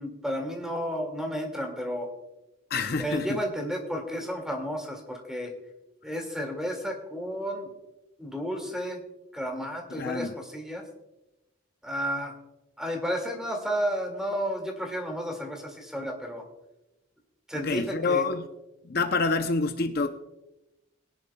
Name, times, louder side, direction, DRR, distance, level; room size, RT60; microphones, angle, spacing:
voice 1, 0.0-2.1 3.0-5.5 6.0-7.7 8.2-9.0 9.3-10.8 11.8-12.4 12.8-16.4 17.5-18.3, equal, 5° right, 2.0 m, -32 dB
voice 2, 2.7-3.3 9.9-10.3 17.6-18.4 18.9-20.1, left 4 dB, 50° left, 0.5 m, -27 dB
21.5 x 10.5 x 2.2 m
head